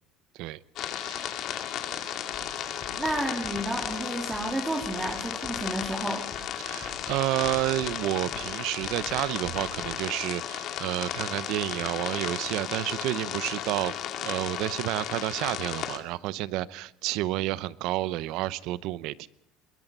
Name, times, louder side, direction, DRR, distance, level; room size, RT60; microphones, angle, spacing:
sound 1, 0.8-16.0, left 10 dB, 50° left, 2.3 m, -34 dB
voice 1, 1.0-1.4 4.3-4.4 6.6-13.9 14.2-19.3, right 16 dB, 65° right, 18 dB, 0.8 m, -30 dB
sound 2, 2.3-9.9, left 2 dB, 25° left, 5.1 m, -48 dB
voice 2, 3.0-6.3, right 1 dB, 10° right, 1 dB, 2.7 m, -31 dB
22.0 x 22.0 x 5.5 m, 0.74 s
cardioid pair, 140°, 0 cm